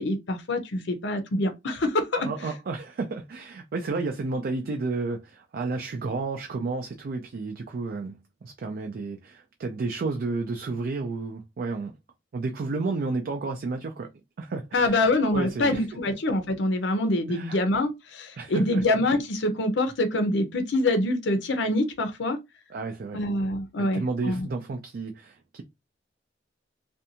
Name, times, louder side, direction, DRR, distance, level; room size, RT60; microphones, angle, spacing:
voice 1, 0.0-2.3 14.7-22.4 23.1-24.5, left 2 dB, 70° left, 0.6 m, -25 dB
voice 2, 2.1-11.9 12.3-14.1 14.4-15.0 15.3-15.8 17.3-17.6 18.4-18.8 22.7-23.2 23.8-25.6, right 3 dB, 55° right, 0.4 m, -31 dB
2.5 x 2.2 x 2.7 m
head